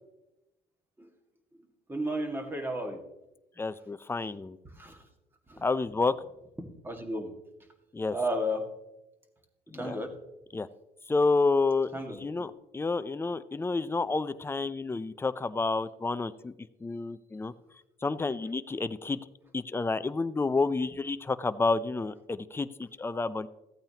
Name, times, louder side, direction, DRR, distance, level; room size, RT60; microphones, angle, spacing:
voice 1, 1.9-3.0 4.6-5.0 5.5-5.7 6.8-7.3 8.1-8.7 9.7-10.1 11.9-12.5, equal, 15° right, 2 dB, 1.9 m, -33 dB
voice 2, 3.6-4.6 5.6-6.1 7.9-8.2 9.7-10.0 10.5-10.7 11.1-11.9 12.2-16.5 16.8-17.5 18.0-19.2 19.5-23.5, left 3 dB, 15° left, 14 dB, 0.5 m, -29 dB
15.0 x 8.7 x 2.9 m, 0.96 s
cardioid pair, 110°, 17 cm